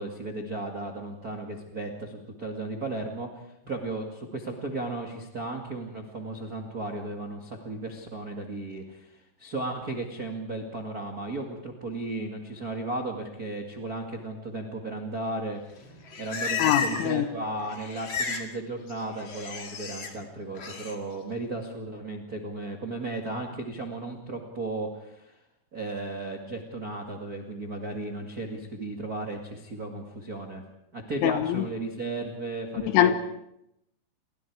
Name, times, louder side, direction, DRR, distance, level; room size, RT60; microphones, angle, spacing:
voice 1, 0.0-25.3 25.7-30.6 30.9-33.1, right 2 dB, 55° right, 1.0 m, -35 dB
Livestock farm animals working animals, 15.8-17.2 17.4-18.5 18.8-20.1 20.5-20.9, left 6 dB, 40° left, 1.8 m, -33 dB
voice 2, 16.6-17.3 31.2-31.7 32.9-33.1, left 11 dB, 85° left, 3.7 m, -23 dB
30.0 x 22.5 x 4.8 m
omnidirectional pair, 5.4 m